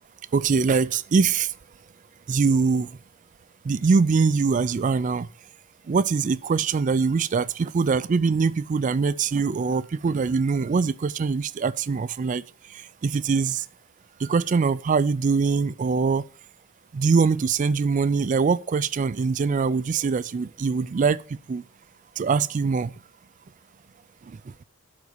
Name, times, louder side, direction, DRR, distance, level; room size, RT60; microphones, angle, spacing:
voice 1, 0.3-1.5 2.3-2.9 3.7-5.3 5.9-12.4 13.0-13.6 14.2-16.2 16.9-21.2 21.5-21.6 22.2-22.9, right 5 dB, 35° right, 0.3 m, -23 dB
12.0 x 4.0 x 6.4 m
head